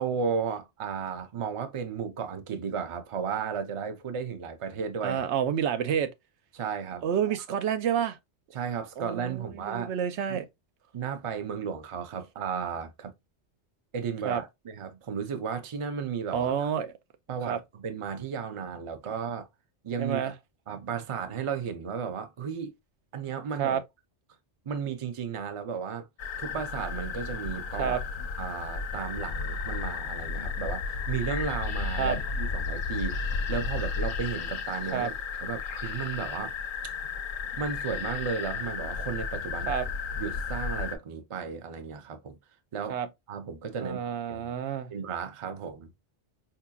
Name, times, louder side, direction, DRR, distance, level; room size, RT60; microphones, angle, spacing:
voice 1, 0.0-5.2 6.5-7.4 8.5-9.9 10.3-10.4 10.9-13.1 13.9-16.5 17.3-19.5 19.8-20.3 20.7-22.7 23.1-23.8 24.7-26.1 26.4-28.0 28.4-35.1 35.4-36.5 37.6-39.7 40.2-42.4 42.7-43.0 43.3-44.5 44.9-45.9, right 6 dB, 40° right, 0.5 m, -34 dB
voice 2, 5.0-6.1 7.0-8.2 9.0-10.5 14.2-14.4 16.3-16.9 17.5-17.6 20.0-20.3 23.6-23.8 27.8-28.0 32.0-32.2 34.9-35.1 39.7-39.8 42.9-43.1 43.8-44.9, right 8 dB, 85° right, 0.9 m, -29 dB
sound 1, 26.2-40.9, left 5 dB, 60° left, 0.6 m, -33 dB
4.6 x 2.8 x 2.2 m
omnidirectional pair, 1.2 m